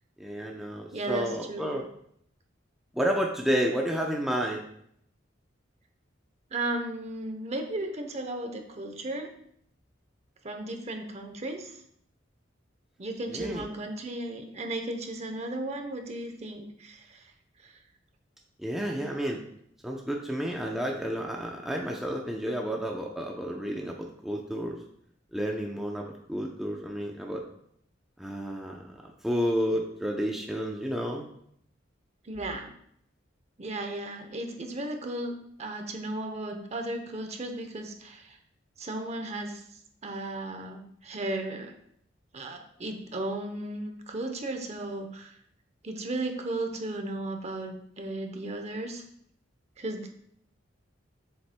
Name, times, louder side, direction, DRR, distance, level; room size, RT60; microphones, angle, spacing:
voice 1, 0.2-1.9 2.9-4.6 13.3-13.6 18.6-19.4 19.8-24.8 25.3-27.4 28.2-29.0 29.2-31.2, equal, ahead, -1 dB, 0.6 m, -31 dB
voice 2, 0.9-1.8 6.5-9.3 10.4-11.7 13.0-17.2 17.6-17.7 32.2-32.7 33.6-38.4 38.8-39.6 40.0-41.7 42.3-45.3 45.8-49.0 49.8-50.1, right 2 dB, 35° right, 5 dB, 0.8 m, -35 dB
7.7 x 7.0 x 2.2 m, 0.69 s
head